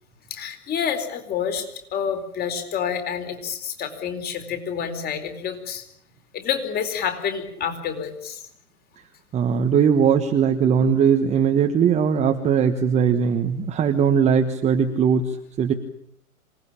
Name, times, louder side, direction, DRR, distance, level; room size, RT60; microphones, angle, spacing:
voice 1, 0.3-1.7 1.9-5.8 6.3-8.4, left 7 dB, 20° left, 8 dB, 4.2 m, -28 dB
voice 2, 9.3-15.7, right 7 dB, 15° right, 5 dB, 1.4 m, -20 dB
27.0 x 19.0 x 8.8 m, 0.72 s
hypercardioid pair, 130°, 44 cm